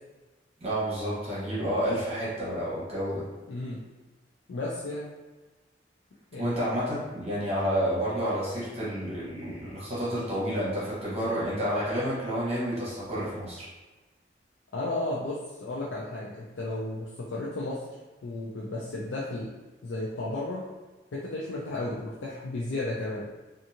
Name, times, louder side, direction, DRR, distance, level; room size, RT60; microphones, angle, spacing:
voice 1, 0.6-3.3 6.4-13.7, equal, 35° right, -8 dB, 1.0 m, -30 dB
voice 2, 3.5-3.8 4.5-5.1 6.3-6.5 14.7-19.5 19.8-20.6 21.1-23.3, left 2 dB, 90° left, -5 dB, 0.5 m, -33 dB
2.6 x 2.5 x 2.8 m, 1.2 s
head